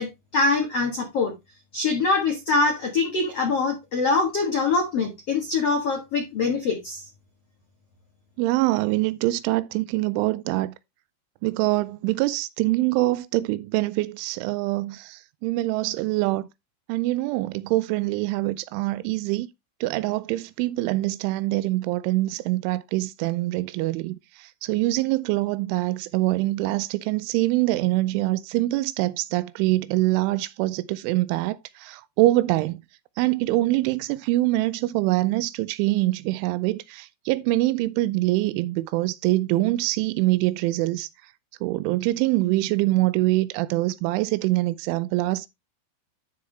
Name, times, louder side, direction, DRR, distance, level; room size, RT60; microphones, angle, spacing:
voice 1, 0.0-1.3 1.7-7.0, left 3 dB, 80° left, 1.3 m, -24 dB
voice 2, 8.4-10.7 11.4-16.5 16.9-19.5 19.8-32.8 33.2-41.1 41.6-45.5, right 18 dB, 85° right, 3.0 m, -24 dB
11.5 x 4.7 x 3.3 m
omnidirectional pair, 5.4 m